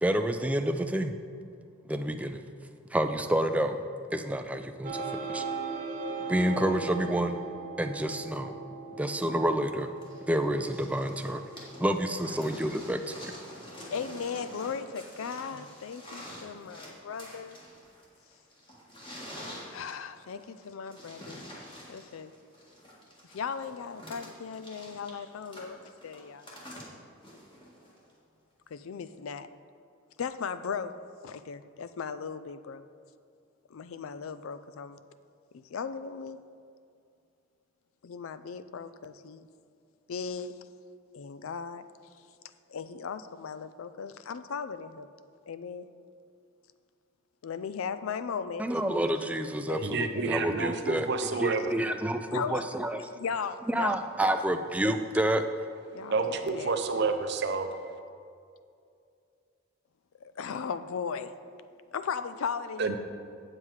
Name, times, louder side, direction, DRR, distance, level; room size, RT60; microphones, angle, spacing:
voice 1, 0.0-1.1 1.9-2.4 2.9-3.8 4.1-5.0 5.3-5.4 6.3-7.4 7.8-8.5 9.0-9.9 10.3-11.4 11.8-13.3 48.6-51.1 51.4-53.1 53.7-55.4, right 1 dB, 5° right, 7 dB, 0.3 m, -29 dB
sound 1, 4.8-14.1, right 4 dB, 35° right, 0.9 m, -39 dB
sound 2, 10.0-28.1 29.1-29.2, equal, 25° left, 1.6 m, -47 dB
voice 2, 13.9-17.6 19.7-21.4 21.9-22.3 23.3-26.5 28.7-29.5 30.2-30.9 31.2-32.8 33.7-35.0 35.5-36.4 38.0-39.5 40.1-40.5 41.1-41.8 42.7-45.1 45.5-45.9 47.4-48.7 49.7-50.3 51.3-51.4 52.3-52.7 53.1-53.9 54.4-54.5 55.9-57.1 60.2-61.3 61.9-63.0, left 6 dB, 85° left, 12 dB, 0.4 m, -37 dB
voice 3, 49.8-51.7 56.1-57.7 62.8-63.0, right 4 dB, 55° right, 7 dB, 0.6 m, -29 dB
7.8 x 7.5 x 4.7 m, 2.4 s
head